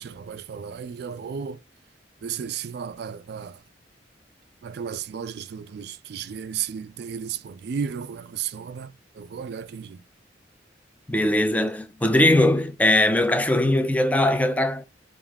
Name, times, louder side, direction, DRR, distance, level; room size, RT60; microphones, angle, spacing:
voice 1, 0.0-1.6 2.2-3.5 4.6-8.9 9.2-10.0, right 7 dB, 60° right, 0.3 m, -33 dB
voice 2, 11.1-14.9, left 1 dB, 10° left, 0.4 m, -20 dB
3.5 x 2.5 x 3.5 m
head